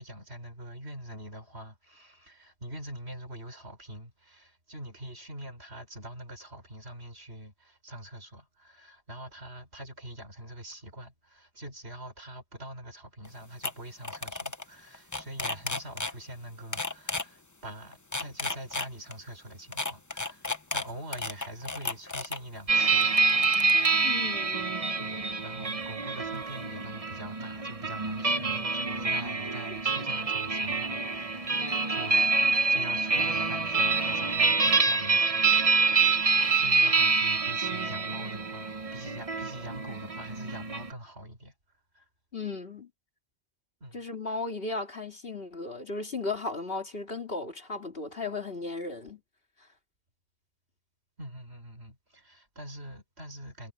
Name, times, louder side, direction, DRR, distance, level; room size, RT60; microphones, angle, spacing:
voice 1, 0.0-20.5 20.7-23.2 25.0-36.1 36.5-41.5 41.9-42.1 43.8-44.0 51.2-53.7, right 1 dB, 70° right, 6.3 m, -44 dB
sound 1, 13.3-13.4 13.6-13.7 14.0-14.6 14.9-16.1 16.7-17.2 17.9-19.2 19.7-22.4 23.0-23.9, left 2 dB, 15° left, 1.0 m, -33 dB
sound 2, 22.7-40.9, right 4 dB, 30° right, 1.2 m, -26 dB
voice 2, 24.0-24.7 42.3-42.9 43.9-49.2, left 3 dB, 60° left, 3.1 m, -35 dB
omnidirectional pair, 1.1 m